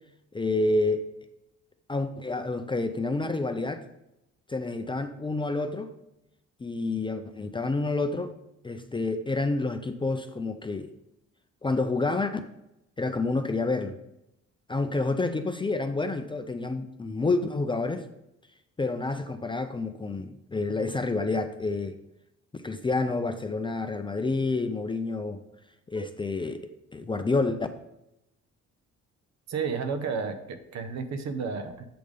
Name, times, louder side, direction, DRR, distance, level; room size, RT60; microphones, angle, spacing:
voice 1, 0.3-1.1 1.9-3.8 4.5-5.9 6.6-8.4 8.6-10.9 11.6-12.4 13.0-14.0 14.7-18.1 18.8-22.0 22.6-25.4 25.9-27.6, left 3 dB, 15° left, 0.4 m, -29 dB
voice 2, 29.5-31.9, right 5 dB, 65° right, 0.9 m, -32 dB
7.8 x 3.5 x 5.1 m
cardioid pair, 90°, 30 cm